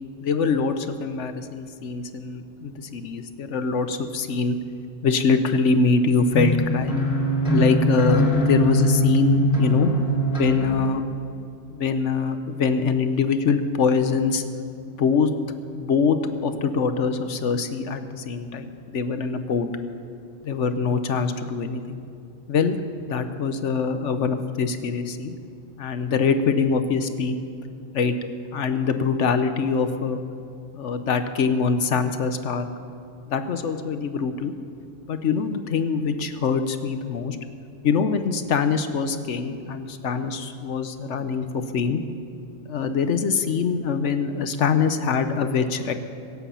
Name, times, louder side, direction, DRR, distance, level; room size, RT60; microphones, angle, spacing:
voice 1, 0.2-4.6 5.0-6.9 7.5-9.9 10.3-11.0 11.7-14.4 14.9-15.3 15.7-16.2 16.4-19.7 20.4-22.0 22.5-22.8 23.1-25.3 25.8-27.4 27.9-28.2 28.5-30.2 30.7-32.7 33.3-34.5 35.1-37.4 37.8-42.0 42.7-45.9, left 5 dB, 70° left, 9 dB, 1.1 m, -23 dB
sound 1, 6.3-10.9, equal, 40° left, 3.2 m, -22 dB
24.0 x 8.1 x 5.7 m, 2.5 s
omnidirectional pair, 1.3 m